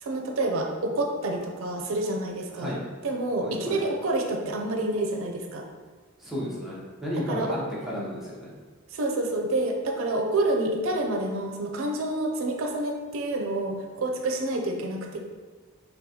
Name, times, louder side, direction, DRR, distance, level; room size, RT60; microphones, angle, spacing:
voice 1, 0.0-2.7 3.0-5.7 7.1-7.6 8.9-15.2, right 2 dB, 85° right, 2 dB, 0.5 m, -28 dB
voice 2, 2.5-2.8 3.4-3.8 6.2-7.6 7.8-8.5, equal, ahead, -7 dB, 0.7 m, -33 dB
3.7 x 2.2 x 2.8 m, 1.4 s
head